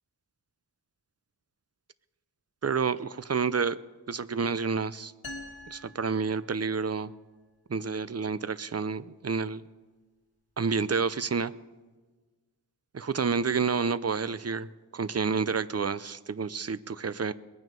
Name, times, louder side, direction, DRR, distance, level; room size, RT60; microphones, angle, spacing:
voice 1, 2.6-3.8 4.1-5.1 5.7-7.1 7.7-9.6 10.6-11.5 12.9-17.3, right 5 dB, 40° right, 16 dB, 0.6 m, -29 dB
sound 1, 5.2-7.0, left 1 dB, 65° left, 2.4 m, -45 dB
21.5 x 9.4 x 5.3 m, 1.3 s
wide cardioid pair, 55°, 40 cm